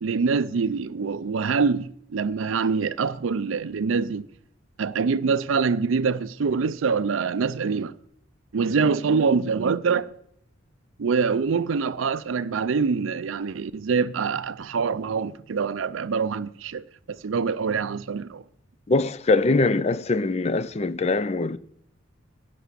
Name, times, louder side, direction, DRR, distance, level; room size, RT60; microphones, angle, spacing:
voice 1, 0.0-4.3 4.8-7.9 8.5-10.1 11.0-18.4, right 5 dB, 85° right, 0.5 m, -25 dB
voice 2, 18.9-21.6, left 3 dB, 30° left, 0.4 m, -22 dB
10.5 x 6.1 x 8.3 m
head